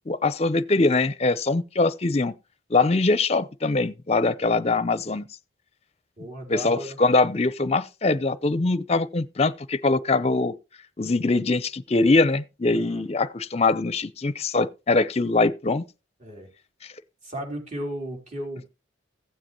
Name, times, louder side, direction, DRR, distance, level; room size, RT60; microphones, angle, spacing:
voice 1, 0.1-2.3 2.7-5.3 6.5-10.5 11.0-15.8, left 3 dB, 35° left, 0.6 m, -22 dB
voice 2, 6.2-7.0 12.7-13.0 16.2-16.5 17.2-18.7, right 1 dB, 40° right, 3.9 m, -35 dB
15.5 x 7.7 x 3.0 m
head